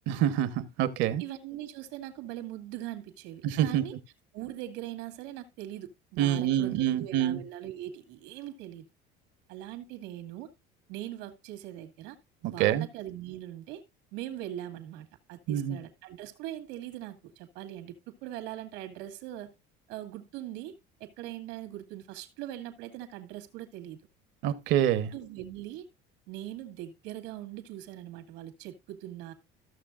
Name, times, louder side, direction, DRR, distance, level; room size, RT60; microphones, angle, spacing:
voice 1, 0.1-1.2 3.4-3.8 6.2-7.4 12.4-12.9 15.5-15.8 24.4-25.1, right 11 dB, 70° right, 1.2 m, -26 dB
voice 2, 1.2-3.9 4.3-8.9 9.5-10.5 10.9-12.2 12.5-13.8 14.1-19.5 19.9-24.0 25.1-25.9 26.3-29.3, right 13 dB, 85° right, 2.3 m, -41 dB
14.5 x 6.7 x 2.4 m
cardioid pair, 145°, 20 cm